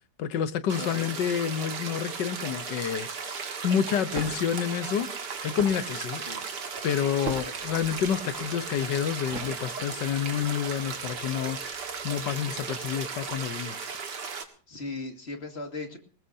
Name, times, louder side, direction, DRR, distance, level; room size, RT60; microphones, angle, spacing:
voice 1, 0.2-5.1 5.4-6.2 6.8-11.6 12.0-13.9, left 9 dB, 90° left, 1.6 m, -29 dB
sound 1, 0.7-14.4, right 5 dB, 80° right, 2.3 m, -36 dB
voice 2, 0.8-1.2 6.2-6.4 14.7-16.0, left 3 dB, 35° left, 2.4 m, -37 dB
sound 2, 4.0-10.1, right 4 dB, 50° right, 1.9 m, -42 dB
Water tap faucet / Liquid, 7.6-13.3, left 1 dB, 65° left, 7.6 m, -54 dB
21.0 x 19.5 x 2.8 m
omnidirectional pair, 1.8 m